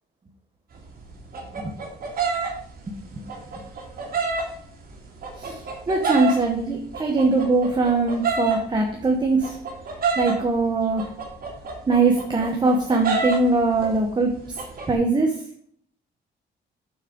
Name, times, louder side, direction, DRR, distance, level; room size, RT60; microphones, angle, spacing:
sound 1, 0.7-4.4 4.9-6.6 6.9-10.5 11.0-13.5 13.7-14.1 14.4-14.9, right 4 dB, 50° right, 2.6 m, -27 dB
voice 1, 2.9-3.2 5.4-5.6 5.9-9.6 10.1-11.1 11.9-14.6 14.9-15.4, right 3 dB, 20° right, 1 dB, 1.1 m, -22 dB
7.4 x 6.4 x 5.1 m, 0.63 s
wide cardioid pair, 175°, 19 cm